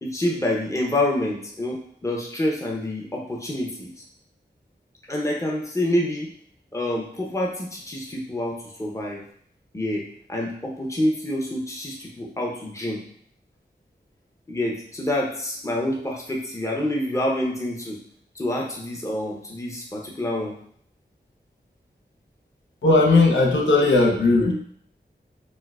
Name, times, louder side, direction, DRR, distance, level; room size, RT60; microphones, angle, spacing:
voice 1, 0.0-4.0 5.1-6.3 6.7-9.2 9.7-13.0 14.5-18.0 18.4-20.5, left 1 dB, 15° left, -2 dB, 0.7 m, -27 dB
voice 2, 22.8-24.5, left 3 dB, 85° left, 0 dB, 0.6 m, -17 dB
4.3 x 2.1 x 2.3 m, 0.62 s
wide cardioid pair, 45°, 19 cm